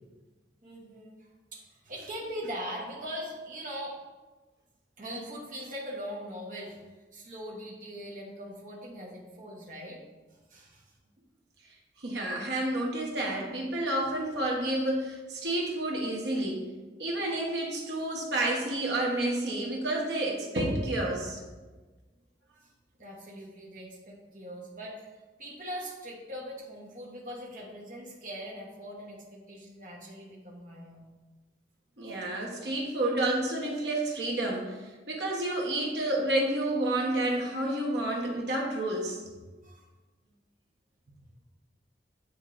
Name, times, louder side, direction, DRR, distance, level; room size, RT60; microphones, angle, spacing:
voice 1, 0.6-4.0 5.0-6.8 7.1-10.0 10.3-10.8 22.6-22.7 23.0-25.1 25.4-31.0 39.6-39.8, equal, 45° right, -3 dB, 1.0 m, -41 dB
voice 2, 12.0-16.7 17.0-21.5 32.0-39.2, right 1 dB, 75° right, -1 dB, 1.1 m, -30 dB
8.6 x 4.4 x 2.5 m, 1.3 s
head